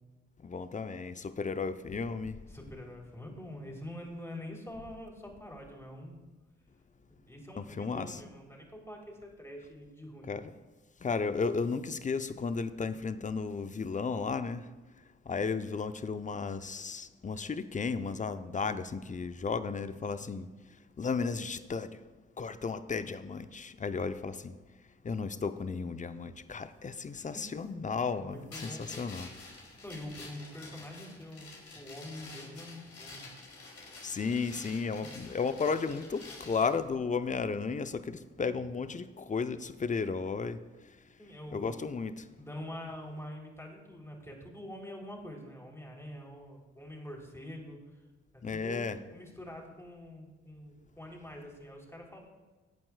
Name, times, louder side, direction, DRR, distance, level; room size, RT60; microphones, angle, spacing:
voice 1, 0.4-2.4 7.6-8.2 10.3-10.5 11.0-14.7 15.2-20.5 21.0-22.0 22.4-24.6 25.0-29.3 34.0-41.0 41.5-42.3 48.4-49.0, left 5 dB, 25° left, 0.7 m, -34 dB
voice 2, 2.5-6.2 7.3-10.3 27.1-27.6 28.1-29.0 29.5-33.3 35.0-35.2 38.5-38.7 41.2-41.7 42.4-48.0 48.3-52.3, left 1 dB, 10° left, 3.4 m, -45 dB
sound 1, 28.5-36.7, left 3 dB, 55° left, 2.9 m, -49 dB
19.0 x 8.7 x 2.4 m
hypercardioid pair, 45°, 29 cm